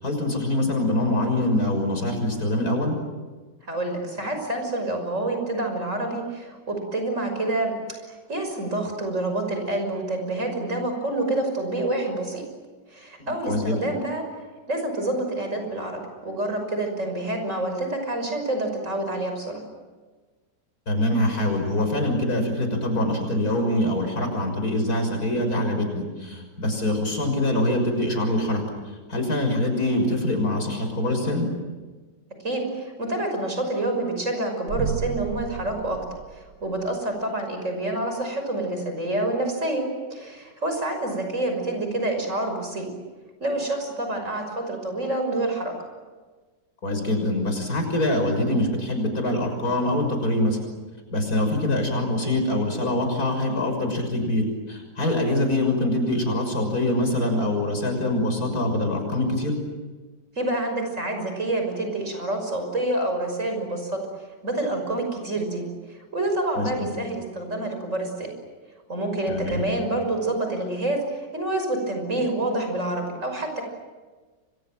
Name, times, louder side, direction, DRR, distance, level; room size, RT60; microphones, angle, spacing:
voice 1, 0.0-3.0 13.2-13.8 20.9-28.6 28.9-31.5 46.8-50.6 51.1-59.6 66.5-66.9 69.3-69.6, left 1 dB, 60° left, 4 dB, 6.7 m, -24 dB
voice 2, 3.7-8.0 8.3-12.4 12.9-14.2 14.7-19.6 32.4-36.0 36.3-42.9 43.4-45.7 60.4-64.0 64.4-68.3 68.9-73.6, right 2 dB, 45° right, 4 dB, 6.3 m, -27 dB
sound 1, 34.7-36.9, right 6 dB, 80° right, 1.9 m, -33 dB
30.0 x 24.5 x 7.7 m, 1.3 s
omnidirectional pair, 1.8 m